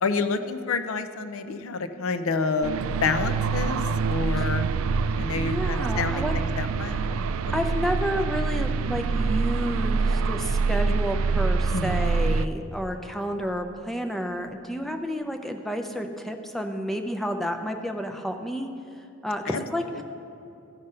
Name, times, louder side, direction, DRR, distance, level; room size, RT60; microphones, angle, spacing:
voice 1, 0.0-3.8 4.1-4.7 5.2-7.5 11.7-12.1 19.5-19.6, left 4 dB, 80° left, 9 dB, 0.5 m, -28 dB
sound 1, 2.6-12.5, right 4 dB, 75° right, 0.3 m, -25 dB
voice 2, 5.3-6.3 7.5-18.7 19.2-20.0, equal, ahead, 4 dB, 0.5 m, -30 dB
14.5 x 5.4 x 5.5 m, 2.7 s
head